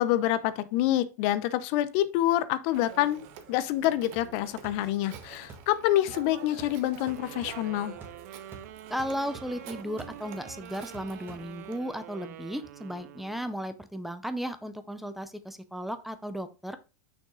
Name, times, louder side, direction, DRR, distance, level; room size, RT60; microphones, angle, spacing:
voice 1, 0.0-7.9, left 13 dB, 55° left, 0.6 m, -27 dB
Telephone, 2.7-11.8, right 8 dB, 55° right, 1.2 m, -48 dB
sound 1, 4.2-11.9, right 4 dB, 25° right, 2.0 m, -51 dB
sound 2, 7.0-13.6, right 12 dB, 75° right, 0.7 m, -46 dB
voice 2, 8.9-16.8, equal, ahead, 0.5 m, -35 dB
6.1 x 5.2 x 3.7 m
supercardioid pair, 135°, 9 cm